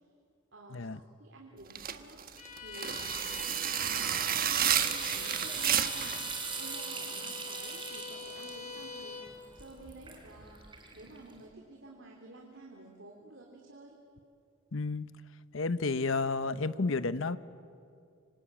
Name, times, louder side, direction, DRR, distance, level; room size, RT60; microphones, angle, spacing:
voice 1, 0.5-2.2 2.6-3.3 4.0-6.2 6.6-10.6 10.9-14.0, right 2 dB, 60° right, 0 dB, 3.3 m, -51 dB
sound 1, 1.7-6.2, right 9 dB, 45° right, 1.2 m, -31 dB
Bowed string instrument, 2.4-9.4, left 3 dB, 40° left, 2.8 m, -45 dB
sound 2, 4.5-11.3, right 5 dB, 25° right, 3.9 m, -40 dB
voice 2, 14.7-15.1 15.5-17.4, left 3 dB, 70° left, 14 dB, 0.9 m, -31 dB
26.0 x 25.5 x 8.8 m, 2.4 s
head